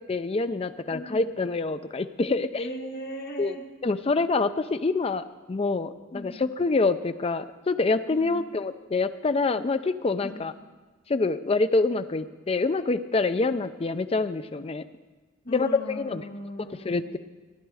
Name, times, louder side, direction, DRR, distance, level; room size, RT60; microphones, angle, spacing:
voice 1, 0.1-2.6 3.4-3.6 3.8-10.5 11.1-14.8 15.5-16.2 16.6-17.2, left 3 dB, 25° left, 10 dB, 0.4 m, -26 dB
voice 2, 0.9-1.4 2.6-3.6 6.1-6.6 8.1-8.5 10.2-10.4 15.4-17.1, equal, 40° left, 0 dB, 1.6 m, -38 dB
15.5 x 10.0 x 4.8 m, 1.3 s
head